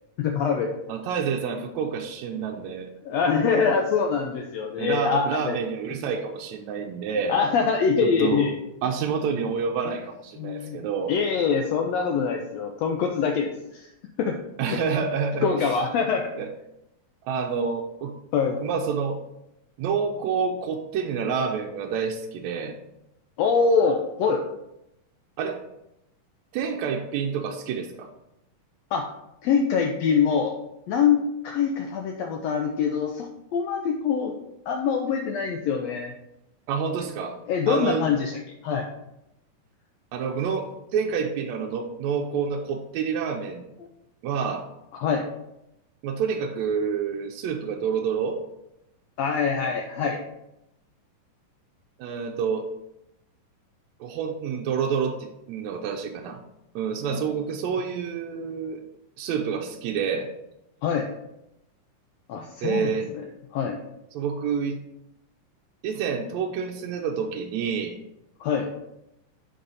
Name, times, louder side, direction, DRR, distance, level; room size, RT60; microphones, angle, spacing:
voice 1, 0.2-0.7 3.1-5.6 7.3-8.5 10.4-10.8 11.1-13.9 14.2-14.4 14.7-14.8 15.4-16.3 18.3-18.6 23.4-24.4 28.9-29.1 29.4-30.5 30.9-33.3 33.5-34.3 34.7-36.1 37.5-38.4 38.6-38.8 44.9-45.2 49.2-50.2 57.1-57.2 60.8-61.1 62.3-63.0 63.5-63.8 68.4-68.7, left 6 dB, 85° left, 3 dB, 1.5 m, -24 dB
voice 2, 0.9-2.9 4.8-7.3 8.0-8.5 8.8-11.1 14.6-15.7 16.4-16.5 17.2-18.1 18.5-19.2 19.8-22.8 25.4-25.6 26.5-28.1 36.7-37.4 37.7-38.1 40.1-43.6 44.2-44.7 46.0-48.4 52.0-52.7 54.0-56.4 56.7-58.8 59.2-60.3 62.6-63.1 64.1-64.8 65.8-67.9, right 6 dB, 75° right, 2 dB, 1.7 m, -28 dB
10.0 x 3.9 x 4.0 m, 0.85 s
omnidirectional pair, 3.7 m